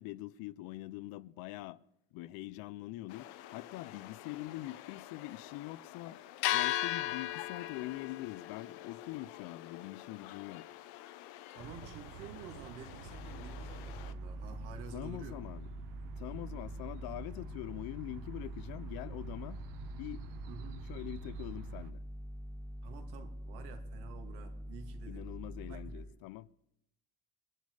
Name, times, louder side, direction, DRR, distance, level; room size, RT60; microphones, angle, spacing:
voice 1, 0.0-1.8 2.1-6.2 6.5-10.7 14.9-15.7 16.2-19.6 20.0-20.3 20.9-22.0 25.1-26.5, left 17 dB, 65° left, 0.6 m, -44 dB
sound 1, 3.1-14.1, left 14 dB, 85° left, 1.0 m, -40 dB
voice 2, 11.5-15.4 20.5-20.8 22.8-25.3 25.7-26.2, right 6 dB, 75° right, 2.6 m, -50 dB
sound 2, 11.6-21.9, right 11 dB, 55° right, 1.0 m, -50 dB
sound 3, 13.0-26.0, equal, 5° right, 1.3 m, -45 dB
22.5 x 11.0 x 4.9 m
cardioid pair, 165°, 39 cm